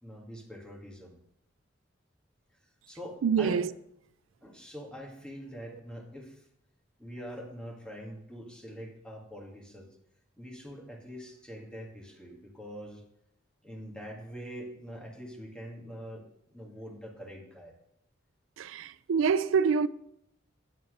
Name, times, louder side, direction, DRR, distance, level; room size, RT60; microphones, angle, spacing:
voice 1, 0.0-1.2 2.5-3.6 4.4-6.5 7.0-9.9 10.4-13.0 13.6-17.7, equal, 5° left, 1.8 m, -44 dB
voice 2, 3.2-3.7 18.6-19.9, right 6 dB, 80° right, 0.4 m, -26 dB
9.4 x 4.1 x 6.4 m
head